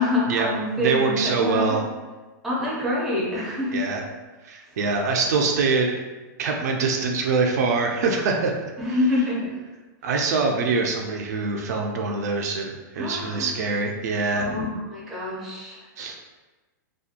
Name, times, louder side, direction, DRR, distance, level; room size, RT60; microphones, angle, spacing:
voice 1, 0.0-1.8 2.4-3.8 8.8-9.5 13.0-13.5 14.4-15.8, left 1 dB, ahead, -7 dB, 0.5 m, -26 dB
voice 2, 0.8-1.8 3.7-4.0 4.4-5.9 6.4-9.0 10.0-14.5 16.0-16.2, right 4 dB, 55° right, 1 dB, 0.4 m, -24 dB
2.7 x 2.2 x 2.4 m, 1.2 s
hypercardioid pair, 160°, 10 cm